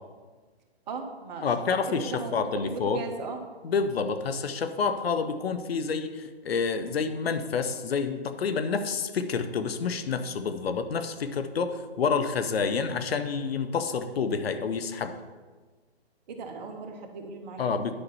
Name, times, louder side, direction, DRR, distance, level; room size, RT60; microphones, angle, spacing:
voice 1, 0.9-1.5 1.9-3.4 16.3-17.8, right 4 dB, 40° right, 3 dB, 1.5 m, -37 dB
voice 2, 1.4-3.0 3.6-15.1 17.6-18.0, left 5 dB, 65° left, 9 dB, 1.0 m, -28 dB
10.0 x 5.7 x 5.5 m, 1.4 s
hypercardioid pair, 140°, 32 cm